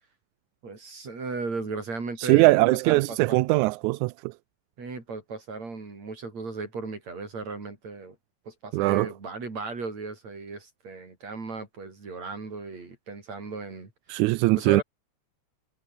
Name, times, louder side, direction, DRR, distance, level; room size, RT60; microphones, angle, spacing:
voice 1, 0.6-3.4 4.8-8.2 8.5-13.9 14.5-14.8, right 4 dB, 60° right, 7.5 m, -36 dB
voice 2, 2.2-4.1 8.7-9.1 14.1-14.8, right 22 dB, 85° right, 1.9 m, -21 dB
omnidirectional pair, 3.4 m